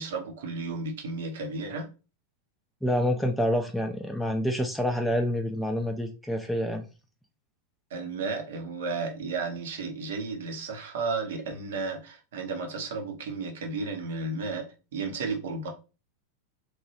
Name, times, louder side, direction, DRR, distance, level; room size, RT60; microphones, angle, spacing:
voice 1, 0.0-1.9 7.9-14.7 14.9-15.7, right 4 dB, 55° right, 0.6 m, -33 dB
voice 2, 2.8-6.8, left 1 dB, ahead, 0.3 m, -27 dB
3.0 x 2.2 x 2.8 m
figure-of-eight pair, 90°, 0 cm